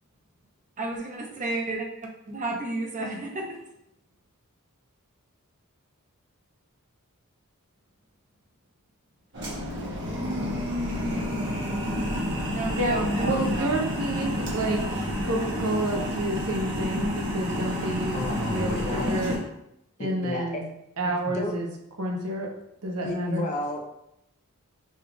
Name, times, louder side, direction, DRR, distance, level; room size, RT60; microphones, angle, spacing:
voice 1, 0.8-1.8 2.3-3.4 12.5-13.7, right 2 dB, 35° right, 0 dB, 0.8 m, -32 dB
sound 1, 9.3-19.4, equal, 55° right, 1.2 m, -29 dB
voice 2, 12.7-14.8 15.2-19.3 20.0-20.6 21.0-21.7 22.0-22.5 22.8-23.5, right 1 dB, 70° right, 1 dB, 0.8 m, -29 dB
voice 3, 17.7-19.2 20.0-20.6 21.3-21.5 23.0-23.8, left 1 dB, 35° left, 2 dB, 0.6 m, -32 dB
5.2 x 2.4 x 3.4 m, 0.79 s
head